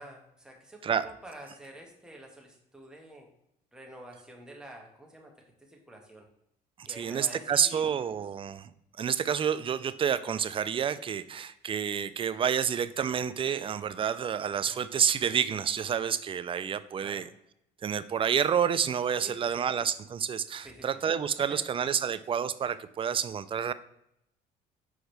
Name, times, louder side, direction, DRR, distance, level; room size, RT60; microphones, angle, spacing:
voice 1, 0.0-3.3 3.7-5.3 5.9-6.2 6.9-7.9 14.7-14.9 17.0-17.3 19.2-19.6 20.6-20.8, right 1 dB, 5° right, 0 dB, 1.5 m, -48 dB
voice 2, 7.0-8.6 9.0-17.2 17.8-23.7, right 8 dB, 30° right, 14 dB, 0.4 m, -29 dB
6.3 x 4.8 x 3.4 m, 0.76 s
cardioid pair, 110°, 17 cm